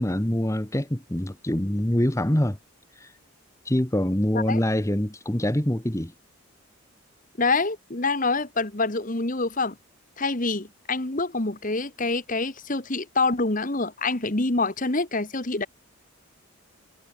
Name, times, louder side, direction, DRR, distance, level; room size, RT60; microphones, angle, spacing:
voice 1, 0.0-2.6 3.0-3.1 3.6-6.1, left 1 dB, 15° left, 1.2 m, -25 dB
voice 2, 7.4-9.7 10.2-15.7, left 3 dB, 35° left, 1.5 m, -26 dB
head